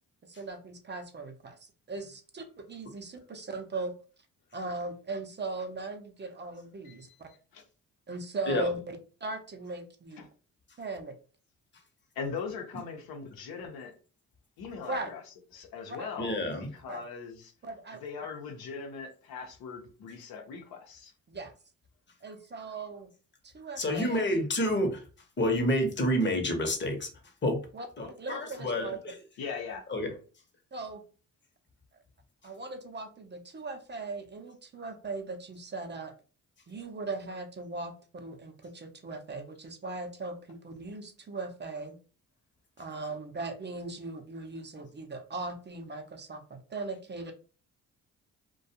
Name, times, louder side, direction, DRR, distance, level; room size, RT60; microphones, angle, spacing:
voice 1, 0.2-3.9 4.5-7.3 8.1-10.2 10.8-11.2 14.9-15.1 15.9-16.1 16.9-17.0 17.6-18.0 21.3-21.5 22.2-23.1 23.4-24.3 27.7-29.0 30.7-31.0 31.9-32.0 32.4-36.1 36.7-42.0 42.8-47.3, right 3 dB, 30° right, 0.6 m, -39 dB
voice 2, 6.8-7.6 10.2-10.3 12.1-14.0 14.6-15.2 15.5-17.5 18.0-21.1 29.4-29.9, left 5 dB, 80° left, 0.8 m, -40 dB
voice 3, 16.2-16.7 23.8-25.0 25.4-27.1 27.4-27.6 28.0-28.9 29.9-30.1, left 1 dB, 30° left, 0.9 m, -28 dB
2.3 x 2.2 x 2.7 m
supercardioid pair, 65°, 36 cm